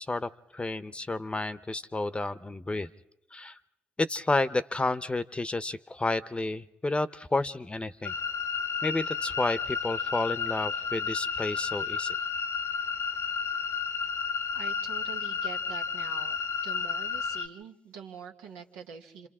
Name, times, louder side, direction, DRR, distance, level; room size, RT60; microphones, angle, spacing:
voice 1, 0.0-2.9 3.3-3.6 4.0-8.1 8.8-12.2, left 2 dB, 20° left, 14 dB, 0.8 m, -31 dB
sound 1, 8.0-17.5, left 6 dB, 60° left, 1.0 m, -32 dB
voice 2, 14.5-16.4 16.6-19.3, right 6 dB, 85° right, 3 dB, 1.3 m, -45 dB
27.0 x 27.0 x 3.7 m, 0.89 s
hypercardioid pair, 50°, 5 cm